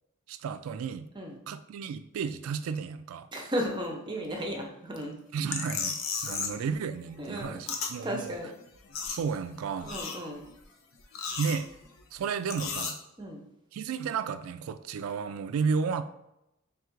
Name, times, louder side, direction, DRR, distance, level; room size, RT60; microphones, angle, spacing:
voice 1, 0.3-1.1 1.5-3.3 5.3-6.0 6.2-8.4 9.1-9.9 11.4-11.7 12.1-13.0 13.7-16.0, right 6 dB, 85° right, 11 dB, 0.3 m, -32 dB
voice 2, 3.3-5.2 6.4-6.5 7.2-7.6 8.0-8.5 9.8-10.4 13.2-13.4, equal, 20° right, 1 dB, 0.6 m, -34 dB
sound 1, 5.5-6.7 6.9-7.9 8.3-8.4 8.6-9.5 9.8-10.5 11.0-12.0 12.5-12.9, left 5 dB, 70° left, 0.5 m, -34 dB
3.5 x 2.4 x 4.5 m, 0.88 s
head